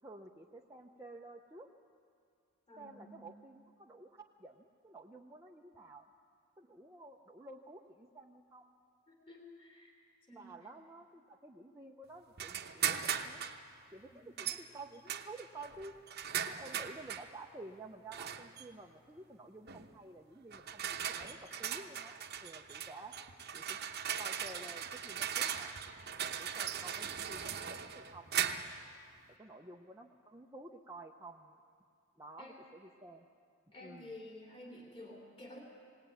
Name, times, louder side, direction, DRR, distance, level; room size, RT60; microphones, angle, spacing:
voice 1, 0.0-1.7 2.8-6.1 6.6-8.7 10.3-13.4 13.9-15.9 16.5-23.2 23.5-23.8 24.2-25.7 26.2-28.5 29.4-31.5 32.2-33.3 33.8-34.1, right 2 dB, 15° right, -2 dB, 0.7 m, -52 dB
voice 2, 2.7-3.2 9.1-9.9 10.3-10.5 14.1-14.3 32.4-32.6 33.7-35.6, left 1 dB, 25° left, -2 dB, 3.1 m, -51 dB
sound 1, 12.4-13.6 14.4-14.6 15.1-17.3 18.1-18.6 19.7-19.9 20.5-28.8, right 8 dB, 45° right, 0.9 m, -39 dB
19.5 x 19.0 x 9.1 m, 2.2 s
head